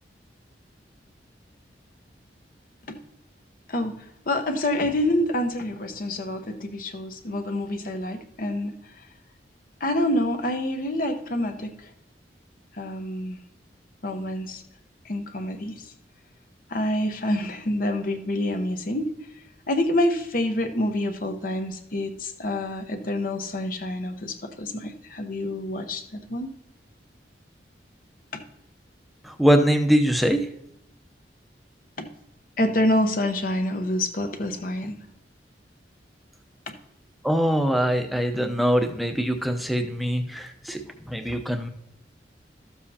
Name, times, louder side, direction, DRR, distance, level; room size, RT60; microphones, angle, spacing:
voice 1, 3.7-8.8 9.8-11.9 12.7-13.4 14.0-14.6 15.0-15.9 16.7-19.1 19.7-26.5 28.3-28.4 32.0-32.1 32.6-35.0 36.7-36.8, left 1 dB, 50° left, 6 dB, 0.9 m, -27 dB
voice 2, 29.2-30.5 37.2-41.7, equal, ahead, 5 dB, 0.7 m, -23 dB
13.0 x 7.2 x 2.8 m, 0.78 s
head